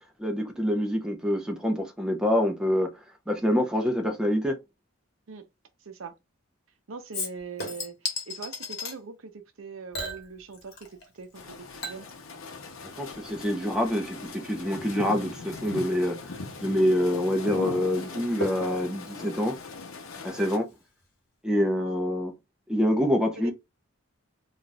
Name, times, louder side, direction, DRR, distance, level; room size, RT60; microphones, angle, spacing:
voice 1, 0.2-2.9 3.3-4.5 13.0-16.2 16.6-19.6 20.2-20.7 21.4-22.3 22.7-23.5, equal, 5° right, 0.5 m, -26 dB
voice 2, 5.8-6.1 6.9-12.1 23.4-23.5, right 5 dB, 70° right, 0.6 m, -42 dB
Chink clink / Liquid, 7.1-9.0 9.9-11.1 11.3-20.4 20.7-20.8, left 3 dB, 50° left, 1.1 m, -40 dB
sound 1, 11.3-20.6, left 3 dB, 85° left, 0.7 m, -40 dB
2.4 x 2.3 x 3.9 m
head